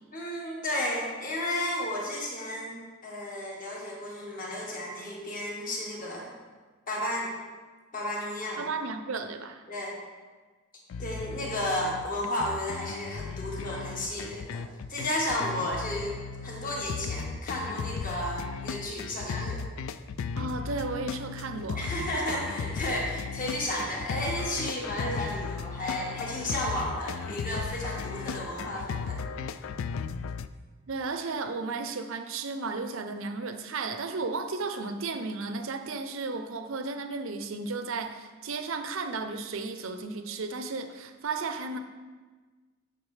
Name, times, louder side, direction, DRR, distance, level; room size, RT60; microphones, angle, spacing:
voice 1, 0.1-2.8 3.0-6.3 6.9-7.3 7.9-8.7 9.7-9.9 11.0-14.6 14.9-19.7 21.7-29.2, left 1 dB, 45° left, -3 dB, 1.6 m, -33 dB
voice 2, 8.6-9.6 20.4-21.9 30.9-41.8, right 3 dB, 75° right, 7 dB, 0.6 m, -34 dB
sound 1, 10.9-30.5, left 5 dB, 75° left, 0.3 m, -36 dB
9.3 x 5.9 x 3.3 m, 1.4 s
head